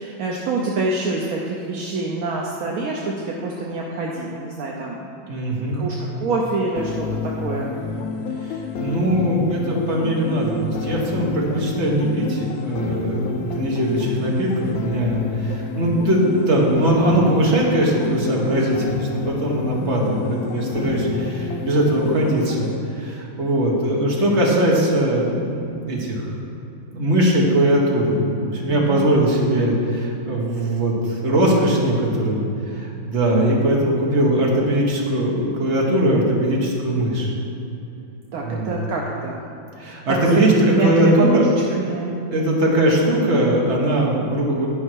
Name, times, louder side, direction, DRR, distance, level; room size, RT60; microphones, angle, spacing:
voice 1, 0.0-5.4 5.7-7.7 28.7-29.1 38.3-39.4 40.1-41.3 41.7-42.1, right 3 dB, 60° right, -2 dB, 0.9 m, -26 dB
voice 2, 5.3-5.8 8.4-26.2 26.9-37.3 38.4-38.8 39.8-41.5 42.3-44.7, right 1 dB, 40° right, -3 dB, 1.5 m, -20 dB
sound 1, 6.8-22.8, left 5 dB, 75° left, 0.8 m, -29 dB
10.5 x 5.5 x 4.6 m, 2.8 s
omnidirectional pair, 2.1 m